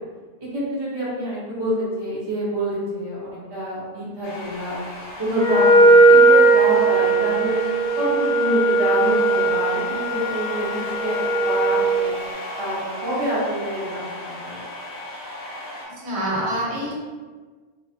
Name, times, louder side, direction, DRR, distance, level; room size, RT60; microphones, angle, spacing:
voice 1, 0.5-4.8 5.2-7.6 8.0-12.1 12.6-14.6, equal, 25° right, -9 dB, 0.8 m, -27 dB
sound 1, 4.2-15.9, left 1 dB, 55° left, 0.9 m, -35 dB
Wind instrument woodwind instrument, 5.3-12.0, right 2 dB, 60° right, 0.7 m, -17 dB
voice 2, 16.0-17.0, right 1 dB, 85° right, -6 dB, 1.1 m, -26 dB
2.4 x 2.0 x 2.7 m, 1.4 s
omnidirectional pair, 1.1 m